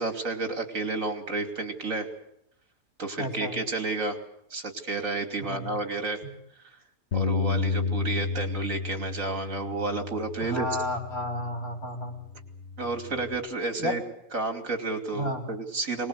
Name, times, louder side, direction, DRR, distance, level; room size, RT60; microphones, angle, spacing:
voice 1, 0.0-2.1 3.0-4.2 4.5-6.2 7.1-10.7 12.8-14.0 14.3-16.1, right 3 dB, 65° right, 6 dB, 3.3 m, -31 dB
voice 2, 3.2-3.5 5.4-5.7 10.4-12.2 13.8-13.9 15.1-15.4, left 1 dB, 80° left, 3 dB, 4.6 m, -32 dB
Bass guitar, 7.1-11.6 12.2-13.4, left 4 dB, 50° left, 1.9 m, -32 dB
23.5 x 21.0 x 8.1 m, 0.77 s
omnidirectional pair, 1.5 m